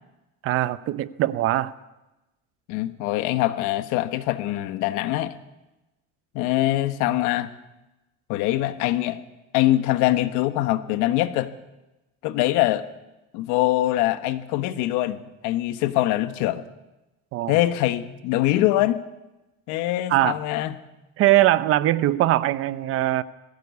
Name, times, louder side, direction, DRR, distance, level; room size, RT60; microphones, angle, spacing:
voice 1, 0.4-1.7 17.3-17.6 20.1-20.4 21.2-23.2, right 15 dB, 50° right, 16 dB, 0.8 m, -21 dB
voice 2, 2.7-5.4 6.3-7.5 8.3-9.2 9.5-11.5 12.2-12.9 13.3-16.6 17.5-19.0 19.7-20.8, left 15 dB, 80° left, 12 dB, 1.3 m, -23 dB
20.5 x 16.0 x 8.4 m, 1.0 s
cardioid pair, 165°, 29 cm